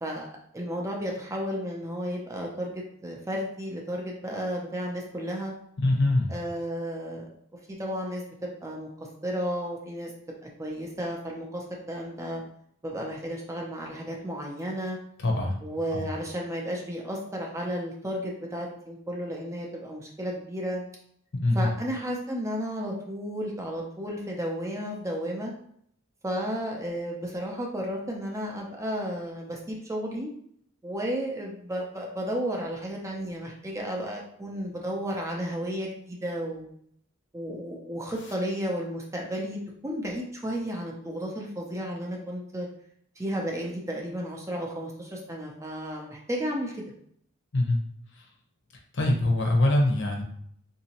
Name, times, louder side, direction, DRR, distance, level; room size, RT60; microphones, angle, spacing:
voice 1, 0.5-5.5 6.3-7.2 7.8-8.9 9.2-10.1 10.6-12.4 12.8-15.0 15.6-20.8 21.5-25.5 26.2-30.3 30.8-36.7 37.3-39.6 39.8-42.7 43.2-46.7, equal, 15° right, -1 dB, 0.5 m, -33 dB
voice 2, 5.8-6.3 15.2-15.6 15.9-16.1 21.4-21.7 47.5-47.8 48.9-50.2, left 1 dB, 55° left, 1 dB, 0.7 m, -23 dB
3.9 x 2.7 x 2.9 m, 0.68 s
head